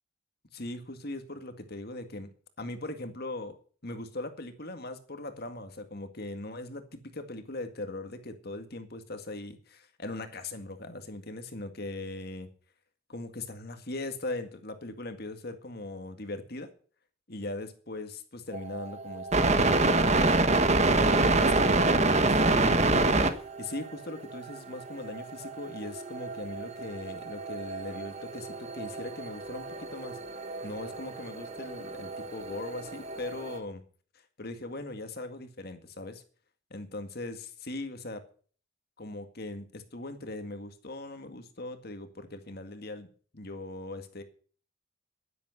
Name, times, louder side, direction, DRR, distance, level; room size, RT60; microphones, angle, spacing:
voice 1, 0.5-2.3 2.6-12.5 13.1-16.7 17.3-20.5 20.9-33.8 34.4-36.2 36.7-38.2 39.0-43.1 43.3-44.2, left 2 dB, 45° left, 8 dB, 2.0 m, -40 dB
sound 1, 18.5-33.6, right 2 dB, 30° right, 1.3 m, -27 dB
11.0 x 11.0 x 7.8 m, 0.43 s
head